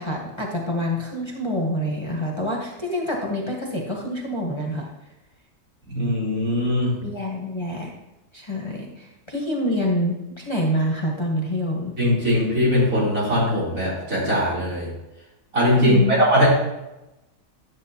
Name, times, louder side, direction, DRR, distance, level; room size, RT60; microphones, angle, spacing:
voice 1, 0.0-4.9 7.0-7.9 8.3-11.9 15.8-16.2, equal, 20° left, -2 dB, 1.1 m, -26 dB
voice 2, 5.9-7.0 12.0-14.9 15.5-16.5, equal, 80° right, -8 dB, 3.9 m, -20 dB
10.5 x 7.2 x 2.8 m, 0.96 s
omnidirectional pair, 1.4 m